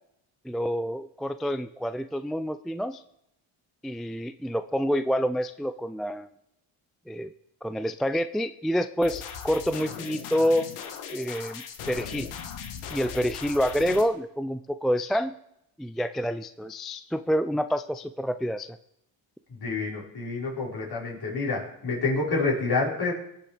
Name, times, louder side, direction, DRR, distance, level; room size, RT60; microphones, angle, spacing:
voice 1, 0.4-3.0 3.8-6.3 7.1-7.3 7.6-10.7 11.1-12.3 12.9-15.3 15.8-18.8, equal, ahead, 11 dB, 0.3 m, -28 dB
sound 1, 9.0-14.0, left 7 dB, 85° left, 1.4 m, -38 dB
voice 2, 19.5-23.1, left 3 dB, 50° left, -3 dB, 4.9 m, -28 dB
18.0 x 6.7 x 5.0 m, 0.78 s
supercardioid pair, 70°, 49 cm